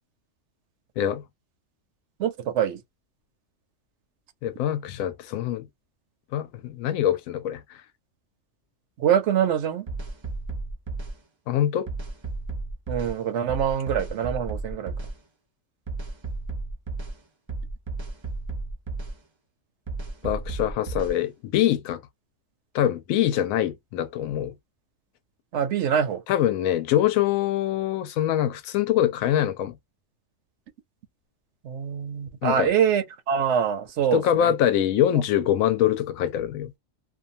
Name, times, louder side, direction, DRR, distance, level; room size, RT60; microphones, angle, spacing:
voice 1, 2.2-2.8 9.0-9.9 12.9-14.9 25.5-26.2 31.6-34.5, right 8 dB, 65° right, 0.8 m, -24 dB
voice 2, 4.4-5.7 6.3-7.6 11.5-11.9 20.2-22.0 22.7-24.5 26.3-29.7 32.4-32.7 34.1-36.7, left 11 dB, 80° left, 1.0 m, -24 dB
sound 1, 9.9-11.1 11.9-13.2 13.5-15.1 15.9-17.2 17.5-19.2 19.9-21.2, right 3 dB, 40° right, 0.4 m, -33 dB
2.6 x 2.2 x 2.6 m
omnidirectional pair, 1.4 m